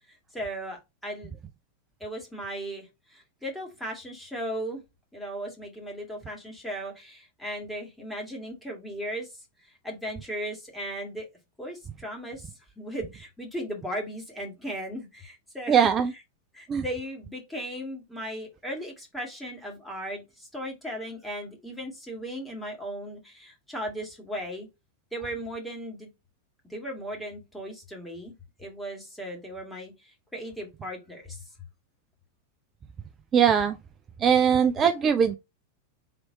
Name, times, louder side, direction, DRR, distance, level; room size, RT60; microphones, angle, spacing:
voice 1, 0.3-1.3 2.0-4.8 5.1-9.3 9.6-11.3 11.6-12.5 12.8-16.2 16.5-24.7 25.1-26.1 26.7-28.3 28.6-31.4, equal, 5° left, 1.9 m, -37 dB
voice 2, 15.7-16.1 16.7-16.8 33.3-33.7 34.2-35.4, right 7 dB, 25° right, 0.4 m, -21 dB
4.1 x 3.1 x 3.9 m
figure-of-eight pair, 90°, 0 cm